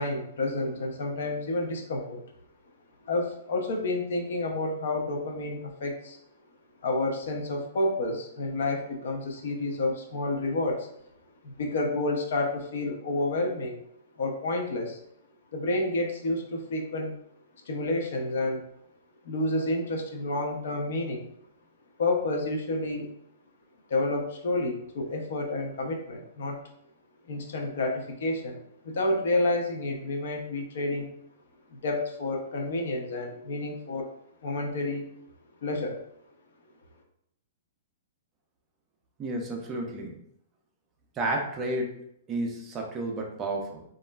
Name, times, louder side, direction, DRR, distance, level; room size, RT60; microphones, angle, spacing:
voice 1, 0.0-2.2 3.0-6.2 6.8-10.9 11.4-13.8 14.2-15.0 15.5-17.1 17.7-18.6 19.2-21.3 22.0-23.1 23.9-26.6 27.3-31.1 31.8-34.1 34.4-35.1 35.6-36.0, left 2 dB, 65° left, 2 dB, 0.6 m, -29 dB
voice 2, 39.2-40.2 41.2-42.0 42.3-43.8, right 1 dB, 20° right, 1 dB, 0.4 m, -31 dB
2.9 x 2.4 x 2.2 m, 0.72 s
hypercardioid pair, 165°, 0 cm